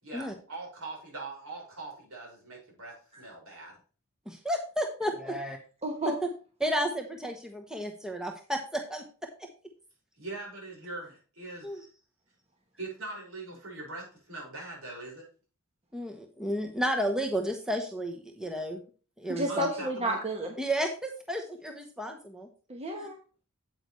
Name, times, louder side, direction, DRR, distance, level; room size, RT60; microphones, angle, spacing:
voice 1, 0.0-3.8 10.2-11.8 12.8-15.3 19.5-20.2, right 2 dB, 65° right, -2 dB, 5.5 m, -42 dB
voice 2, 4.3-5.6 6.6-9.0 11.6-11.9 15.9-18.8 19.2-19.7 20.6-22.5 23.0-23.1, equal, 5° right, 3 dB, 0.9 m, -32 dB
voice 3, 5.8-6.1 19.3-20.5 22.7-23.2, right 1 dB, 30° right, 2 dB, 1.2 m, -31 dB
8.9 x 8.1 x 3.2 m, 0.36 s
head